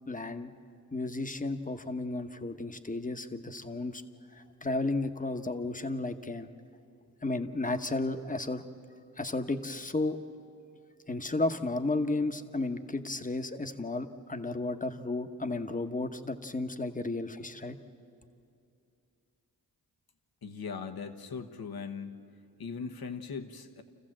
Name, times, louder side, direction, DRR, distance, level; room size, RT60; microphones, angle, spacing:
voice 1, 0.1-0.5 0.9-4.0 4.3-6.5 7.2-8.6 9.2-10.2 11.1-17.8, left 2 dB, 20° left, 7 dB, 1.2 m, -33 dB
voice 2, 20.4-22.2 22.6-23.8, left 5 dB, 70° left, 7 dB, 1.3 m, -39 dB
27.5 x 15.0 x 7.5 m, 2.5 s
cardioid pair, 50°, 38 cm